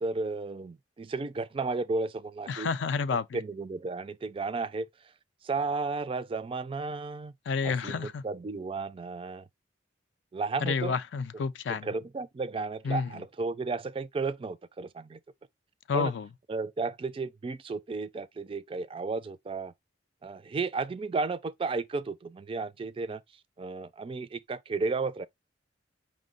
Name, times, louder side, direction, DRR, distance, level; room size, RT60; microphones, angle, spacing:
voice 1, 0.0-2.7 3.1-4.9 5.4-7.3 7.6-9.5 10.3-11.0 11.3-11.4 11.7-15.2 15.9-16.1 16.5-19.7 20.2-23.2 23.6-25.3, right 3 dB, 30° right, 0.3 m, -33 dB
voice 2, 2.5-3.4 7.5-8.2 10.6-11.9 12.8-13.1 15.9-16.3, left 5 dB, 70° left, 0.4 m, -30 dB
5.2 x 2.1 x 3.8 m
head